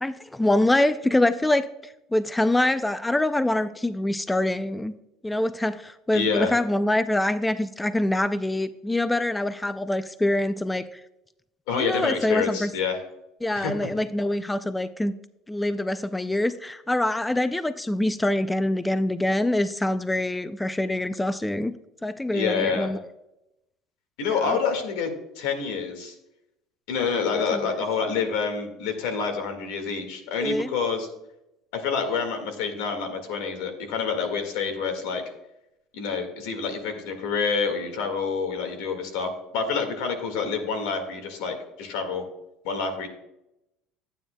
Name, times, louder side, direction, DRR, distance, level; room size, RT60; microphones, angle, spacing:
voice 1, 0.0-4.9 5.2-11.0 11.7-12.7 13.4-15.1 15.5-21.7 22.0-23.0 24.4-24.6 27.3-27.8 30.4-30.7, left 1 dB, 5° left, 12 dB, 0.3 m, -25 dB
voice 2, 6.1-6.5 11.7-13.0 13.5-13.7 22.3-22.9 24.2-26.1 26.9-31.1 31.7-35.2 35.9-42.2 42.6-43.1, left 5 dB, 85° left, 6 dB, 1.8 m, -27 dB
12.0 x 9.0 x 2.2 m, 0.86 s
cardioid pair, 145°, 0 cm